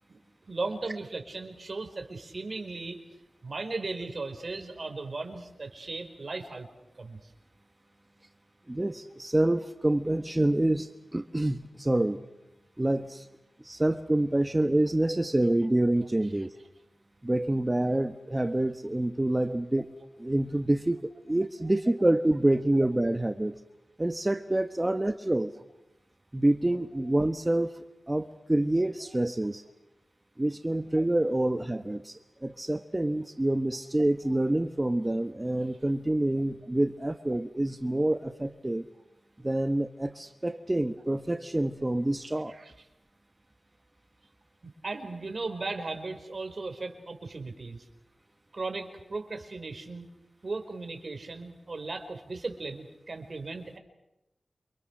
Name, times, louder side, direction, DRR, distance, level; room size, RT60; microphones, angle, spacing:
voice 1, 0.5-3.0 3.4-6.7 7.0-7.3 24.8-24.9 29.1-29.2 42.5-42.7 44.6-47.9 48.5-50.1 50.4-53.8, right 3 dB, 55° right, 5 dB, 5.1 m, -37 dB
voice 2, 8.7-12.2 12.8-13.3 13.6-16.5 17.2-19.9 20.2-21.0 21.3-23.5 24.0-25.5 26.3-27.7 28.1-29.6 30.4-38.9 39.4-42.5, right 1 dB, 20° right, 8 dB, 1.3 m, -27 dB
29.5 x 27.0 x 6.6 m, 0.90 s
cardioid pair, 55°, 0 cm